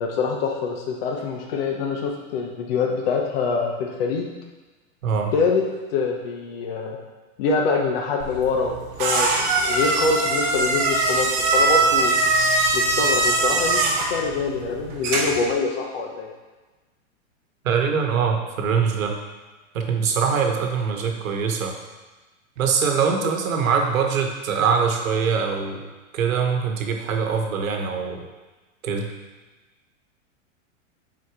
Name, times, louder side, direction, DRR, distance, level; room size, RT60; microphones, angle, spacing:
voice 1, 0.0-4.3 5.3-5.6 5.9-7.0 7.4-12.1 12.7-16.3 23.2-23.3, left 4 dB, 45° left, 0 dB, 0.8 m, -25 dB
voice 2, 5.0-5.3 17.6-19.2 19.7-21.8 22.6-25.9 26.1-28.2 28.8-29.1, right 6 dB, 90° right, 3 dB, 1.3 m, -23 dB
sound 1, 8.2-15.5, right 2 dB, 35° right, 1.1 m, -22 dB
6.1 x 4.7 x 4.8 m, 1.2 s
supercardioid pair, 165°, 40 cm